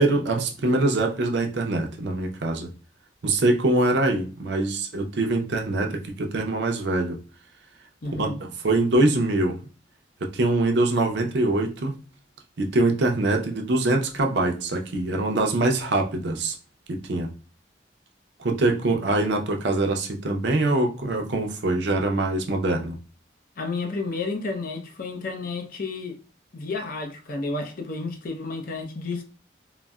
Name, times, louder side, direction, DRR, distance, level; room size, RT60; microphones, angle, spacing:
voice 1, 0.0-2.7 3.2-7.2 8.1-9.6 10.2-12.0 12.6-16.6 16.9-17.3 18.4-23.0, right 2 dB, 65° right, 0.6 m, -23 dB
voice 2, 8.0-8.4 23.6-26.2 26.5-29.2, left 3 dB, 50° left, 0.6 m, -31 dB
3.9 x 2.0 x 2.2 m
head